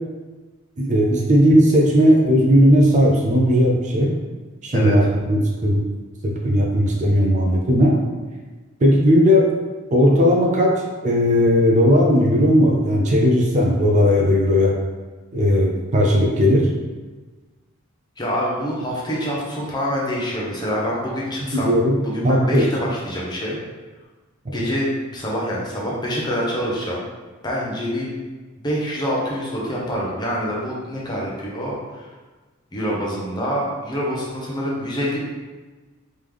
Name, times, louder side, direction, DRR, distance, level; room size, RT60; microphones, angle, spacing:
voice 1, 0.8-4.1 4.6-5.8 6.2-8.0 8.8-9.5 9.9-14.7 15.3-16.7 21.5-21.9 22.2-22.7 24.5-24.7, equal, 35° right, -1 dB, 0.5 m, -16 dB
voice 2, 18.2-21.7 22.0-23.6 24.5-27.0 27.4-28.1 28.6-32.1 32.7-35.2, equal, 20° left, -4 dB, 0.8 m, -26 dB
3.6 x 3.1 x 3.4 m, 1.3 s
head